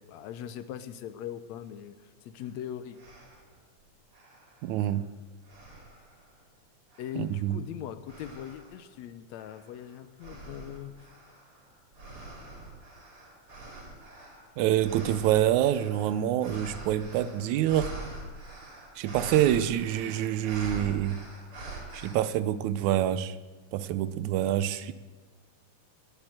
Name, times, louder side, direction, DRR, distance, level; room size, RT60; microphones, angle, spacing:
voice 1, 0.0-3.0 7.0-10.9 24.8-24.9, left 10 dB, 75° left, 12 dB, 2.0 m, -40 dB
sound 1, 2.4-2.5 2.9-3.5 4.1-5.1 5.5-6.3 6.9-7.4 8.1-8.8 9.4-22.1, right 2 dB, 45° right, 4.2 m, -44 dB
voice 2, 4.6-5.1 7.2-7.6 14.6-17.9 19.0-21.2 21.9-23.4 23.7-24.9, right 12 dB, 80° right, 15 dB, 2.0 m, -26 dB
19.0 x 8.7 x 7.7 m, 1.3 s
omnidirectional pair, 3.4 m